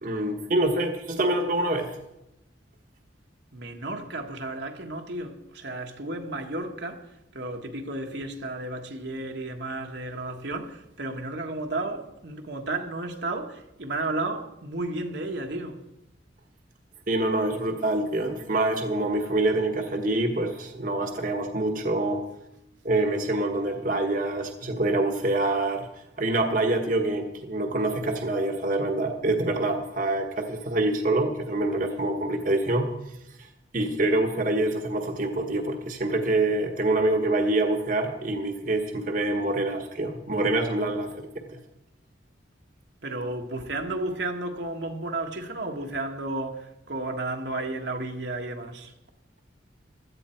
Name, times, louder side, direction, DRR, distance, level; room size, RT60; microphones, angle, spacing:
voice 1, 0.0-2.0 17.1-22.2 22.8-25.9 26.2-32.9 33.4-41.6, right 2 dB, 45° right, 1.3 m, -26 dB
voice 2, 3.5-7.1 7.3-15.8 43.0-48.9, right 2 dB, 65° right, 1.4 m, -33 dB
16.5 x 12.5 x 4.5 m
head